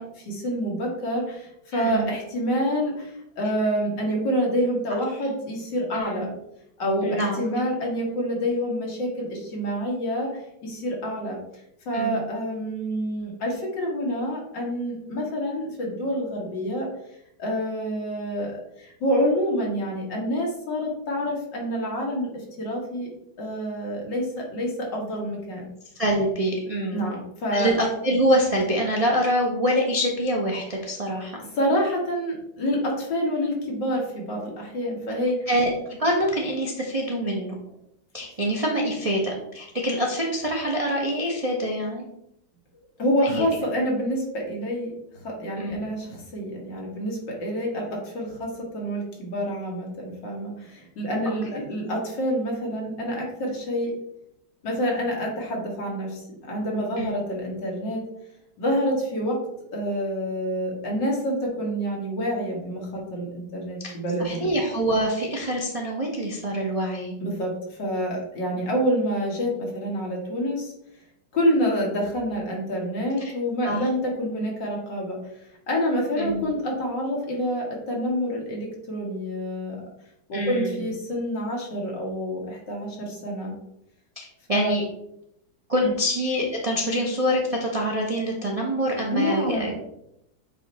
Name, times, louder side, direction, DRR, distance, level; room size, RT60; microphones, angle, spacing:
voice 1, 0.0-6.3 6.8-11.4 11.9-16.9 17.4-23.1 23.4-25.6 26.9-27.7 31.6-35.5 43.0-44.9 45.2-53.9 54.6-58.0 58.6-59.4 59.7-64.5 67.2-70.7 71.3-75.2 75.7-79.8 80.3-83.5 84.5-84.7 85.8-85.9 89.1-89.8, equal, 65° left, -2 dB, 2.3 m, -27 dB
voice 2, 1.7-2.1 5.9-6.3 7.0-7.3 11.9-12.2 25.9-27.1 27.5-31.3 35.5-37.5 38.1-42.1 43.2-43.5 45.6-45.8 57.0-57.1 63.8-63.9 64.2-67.1 73.2-73.3 73.6-73.8 76.2-76.4 80.3-80.9 84.2-84.8 85.7-89.8, equal, 40° right, -2 dB, 0.5 m, -25 dB
8.0 x 2.9 x 4.1 m, 0.78 s
omnidirectional pair, 2.1 m